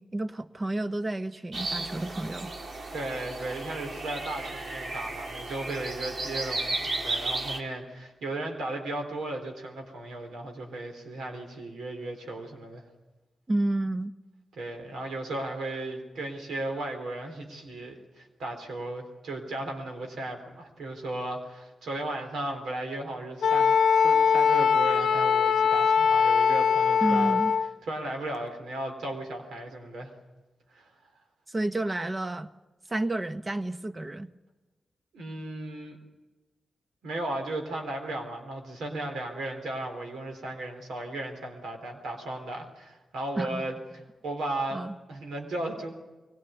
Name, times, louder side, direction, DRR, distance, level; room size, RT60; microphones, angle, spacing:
voice 1, 0.0-2.5 13.5-14.1 27.0-27.5 31.5-32.5 32.9-34.3 43.4-43.6 44.7-45.0, right 2 dB, 35° right, 10 dB, 1.3 m, -30 dB
sound 1, 1.5-7.6, right 2 dB, 65° right, 2.4 m, -34 dB
voice 2, 2.9-12.8 14.6-27.4 27.9-30.1 30.7-30.9 35.1-36.0 37.0-43.8 44.2-44.8 45.1-45.9, right 2 dB, 85° right, 4 dB, 3.8 m, -35 dB
Wind instrument woodwind instrument, 23.4-27.7, left 6 dB, 80° left, 0.8 m, -22 dB
23.0 x 18.0 x 9.4 m, 1.1 s
supercardioid pair, 45°, 0 cm